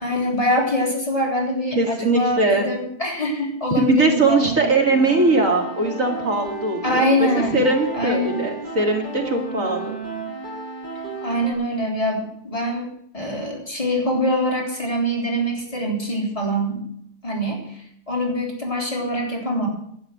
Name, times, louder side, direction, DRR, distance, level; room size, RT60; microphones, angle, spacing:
voice 1, 0.0-4.6 6.8-7.7 7.9-8.5 11.2-12.9 13.1-16.9 17.2-17.8 18.1-19.7, equal, 20° left, -1 dB, 3.6 m, -24 dB
voice 2, 1.7-2.7 3.7-7.3 7.5-10.0, right 2 dB, 55° right, 2 dB, 2.6 m, -20 dB
sound 1, 4.9-11.5, right 3 dB, 30° right, 7.4 m, -33 dB
11.5 x 9.2 x 9.2 m, 0.71 s
omnidirectional pair, 1.7 m